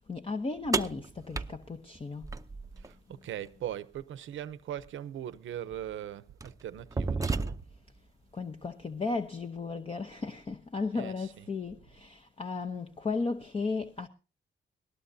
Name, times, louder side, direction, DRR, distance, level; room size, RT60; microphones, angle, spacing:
voice 1, 0.1-2.3 8.3-14.1, left 3 dB, 30° left, 0.9 m, -35 dB
sound 1, 0.7-2.9 4.8-4.9 5.7-5.9 6.4-7.9, right 4 dB, 15° right, 0.6 m, -32 dB
voice 2, 2.8-7.6 10.9-11.5, right 11 dB, 85° right, 0.8 m, -40 dB
20.0 x 18.0 x 2.7 m
cardioid pair, 95°, 20 cm